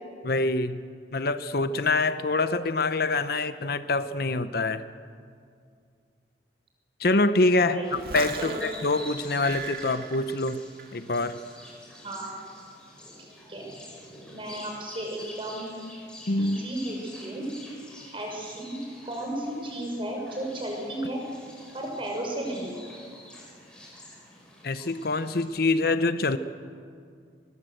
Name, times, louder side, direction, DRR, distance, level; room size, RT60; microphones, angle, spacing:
voice 1, 0.2-0.8 1.1-4.8 7.0-10.6 10.9-11.4 16.3-16.6 24.6-26.4, left 2 dB, 60° left, 12 dB, 0.8 m, -25 dB
voice 2, 7.7-8.0 8.4-8.6 12.0-12.4 13.2-13.7 14.3-15.8 16.4-17.5 18.1-18.8 19.0-21.2 21.7-22.8, right 1 dB, 30° right, 0 dB, 5.9 m, -34 dB
sound 1, 7.8-25.4, left 1 dB, 5° left, 6.1 m, -47 dB
sound 2, 7.9-11.0 11.3-11.7, right 5 dB, 60° right, 2.0 m, -39 dB
23.0 x 21.5 x 7.9 m, 2.2 s
head